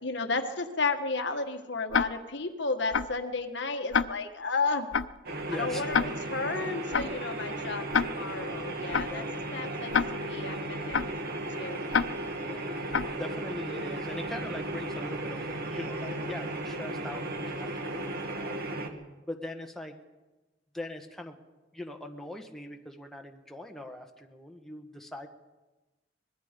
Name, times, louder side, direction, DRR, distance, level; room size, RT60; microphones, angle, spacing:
voice 1, 0.0-4.9 5.5-9.2 9.5-11.9, left 3 dB, 65° left, 6 dB, 1.6 m, -33 dB
Tick-tock, 1.9-2.0 2.9-3.1 3.9-4.0 4.9-5.1 5.9-6.0 6.9-7.1 7.9-8.0 8.9-9.1 9.9-10.0 10.9-11.1 11.9-12.0 12.9-13.1, left 6 dB, 90° left, 0.7 m, -25 dB
sound 1, 5.2-18.9, right 1 dB, 55° right, 2.0 m, -35 dB
voice 2, 5.5-6.0 9.0-9.2 9.6-9.8 12.4-12.7 13.1-15.4 15.7-18.7 19.3-19.9 20.7-21.4 21.7-25.3, left 1 dB, ahead, 2 dB, 1.5 m, -41 dB
24.5 x 21.0 x 5.2 m, 1.1 s
head